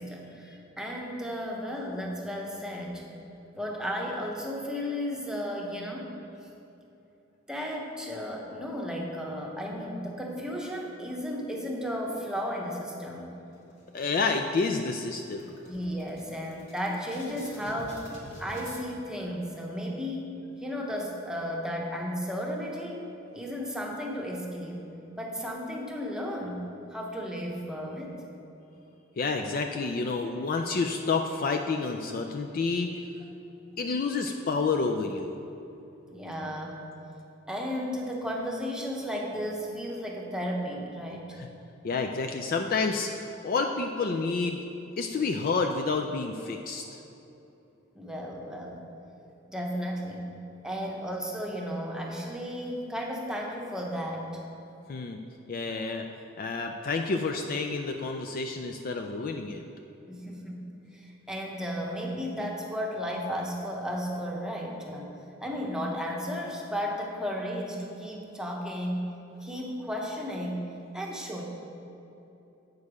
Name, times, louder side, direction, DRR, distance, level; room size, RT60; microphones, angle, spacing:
voice 1, 0.0-3.1 3.5-6.2 7.5-13.3 15.7-18.1 18.4-24.8 25.2-28.1 36.1-36.8 37.5-41.4 47.9-48.8 49.5-50.4 50.6-54.4 60.1-65.2 65.4-70.7 70.9-71.4, equal, 5° right, -1 dB, 0.9 m, -34 dB
sound 1, 13.5-14.3 14.6-14.8 15.1-18.8, equal, 70° left, 1.9 m, -48 dB
voice 2, 13.9-15.5 29.2-33.0 33.8-35.4 41.4-41.5 41.8-44.6 45.0-47.0 54.9-55.2 55.5-56.1 56.4-59.6, left 4 dB, 45° left, 4 dB, 0.4 m, -29 dB
8.2 x 6.5 x 4.9 m, 2.9 s
head